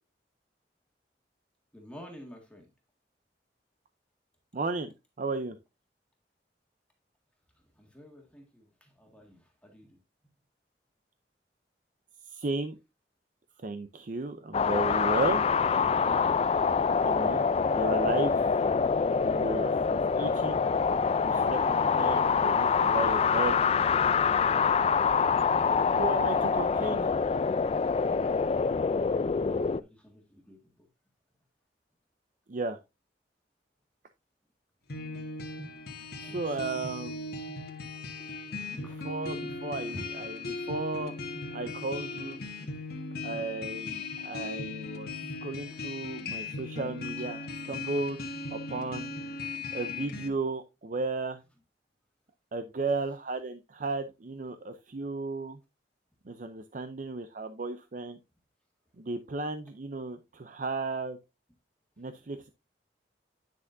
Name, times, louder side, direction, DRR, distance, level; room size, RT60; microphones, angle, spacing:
voice 1, 1.7-2.7 7.8-10.0 16.0-16.1 29.4-30.9 35.7-37.2 38.5-39.0 39.8-40.1 47.0-47.3 49.3-49.4, equal, 5° left, 1.7 m, -51 dB
voice 2, 4.5-5.6 12.3-12.8 13.6-15.4 17.0-17.5 17.7-18.5 19.3-20.6 21.2-23.6 26.0-27.2 32.5-32.8 36.2-37.2 38.7-41.1 41.5-42.4 43.2-45.1 45.4-48.2 48.5-49.1 49.7-51.4 52.5-55.6 56.3-58.2 59.0-61.2 62.0-62.5, right 3 dB, 50° right, 0.6 m, -34 dB
sound 1, 14.5-29.8, left 5 dB, 35° left, 0.3 m, -25 dB
sound 2, 34.9-50.3, left 3 dB, 60° left, 1.5 m, -38 dB
10.0 x 6.0 x 2.6 m
head